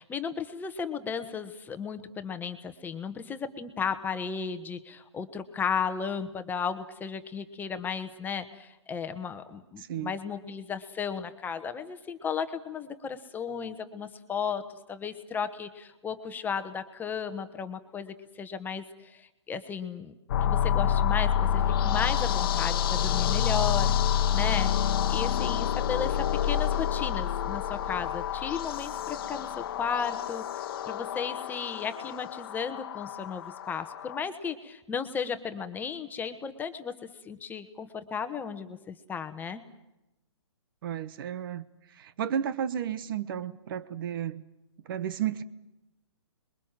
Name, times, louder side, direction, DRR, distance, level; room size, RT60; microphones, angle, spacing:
voice 1, 0.0-20.1 20.4-23.9 24.3-24.7 25.1-39.6, left 6 dB, 10° left, 8 dB, 1.3 m, -34 dB
voice 2, 9.8-10.1 40.8-44.4 44.8-45.4, right 9 dB, 45° right, 15 dB, 1.2 m, -33 dB
sound 1, 20.3-34.2, left 9 dB, 50° left, 1.2 m, -28 dB
27.5 x 22.5 x 7.5 m, 0.92 s
hypercardioid pair, 135°, 15 cm